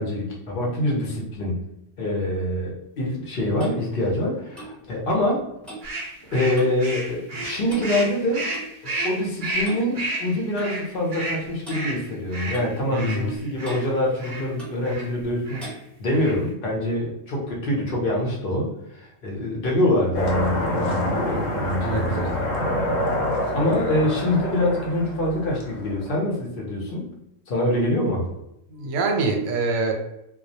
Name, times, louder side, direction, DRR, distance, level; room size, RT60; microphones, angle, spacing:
voice 1, 0.0-1.6 2.0-5.4 6.3-8.5 8.8-15.7 16.0-22.4 23.5-27.1 27.5-28.3, left 1 dB, 55° left, -2 dB, 0.7 m, -25 dB
Clock, 3.0-6.9 7.2-7.4 7.7-8.7 9.6-9.9 10.6-10.7 11.6-11.8 12.5-13.4 13.6-13.9 14.6-14.8 15.6-15.8, right 2 dB, ahead, 0.5 m, -41 dB
sound 1, 5.8-13.8 14.2-14.5 14.8-15.1 15.4-15.7 16.0-16.5, right 2 dB, 55° right, 0.6 m, -32 dB
voice 2, 12.9-13.4 21.8-22.4 28.7-29.9, right 3 dB, 85° right, 2 dB, 0.9 m, -25 dB
sound 2, 20.1-26.1, left 1 dB, 85° left, 1.0 m, -27 dB
2.2 x 2.0 x 2.7 m, 0.83 s
omnidirectional pair, 1.3 m